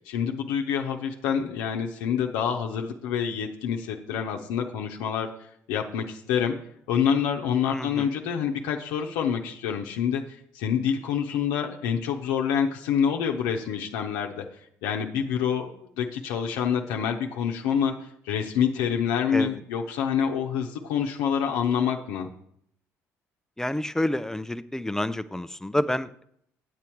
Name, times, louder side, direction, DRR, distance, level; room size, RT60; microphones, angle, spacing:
voice 1, 0.1-5.3 5.7-6.5 6.9-10.2 10.5-14.4 14.8-22.3, left 7 dB, 85° left, 1 dB, 0.8 m, -27 dB
voice 2, 7.7-8.1 19.3-19.6 23.6-26.2, left 1 dB, 10° left, 14 dB, 0.5 m, -29 dB
8.4 x 8.1 x 4.5 m, 0.69 s
supercardioid pair, 70°, 7 cm